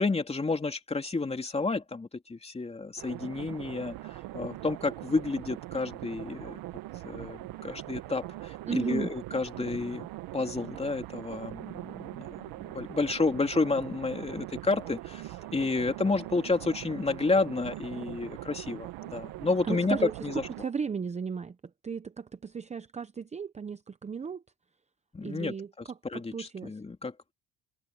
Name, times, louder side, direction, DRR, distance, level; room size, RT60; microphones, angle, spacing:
voice 1, 0.0-4.0 4.3-6.6 7.0-10.1 10.3-12.2 12.6-15.2 15.5-20.4 25.1-27.3, left 3 dB, 15° left, 2.9 m, -30 dB
sound 1, 3.0-20.6, right 16 dB, 80° right, 1.6 m, -42 dB
voice 2, 8.7-9.1 19.6-21.6 21.8-24.4 25.2-26.8, right 6 dB, 20° right, 0.7 m, -35 dB
cardioid pair, 115°, 35 cm